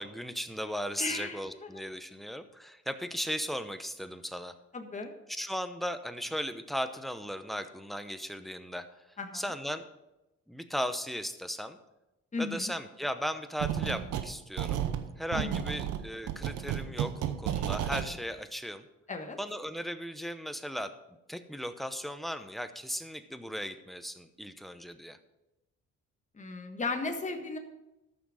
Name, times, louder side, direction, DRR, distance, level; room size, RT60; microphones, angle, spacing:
voice 1, 0.0-4.5 5.3-8.9 9.3-9.9 10.5-11.8 12.4-14.8 15.2-18.9 19.4-20.9 21.3-25.2, equal, ahead, 9 dB, 0.8 m, -36 dB
voice 2, 1.0-1.8 4.7-5.1 9.2-9.5 12.3-12.7 15.3-15.6 19.1-19.4 26.3-27.6, left 3 dB, 25° left, 4 dB, 1.5 m, -36 dB
sound 1, 13.6-14.3 14.6-18.1, right 10 dB, 85° right, 0.9 m, -32 dB
14.0 x 6.0 x 5.0 m, 0.96 s
cardioid pair, 90°, 30 cm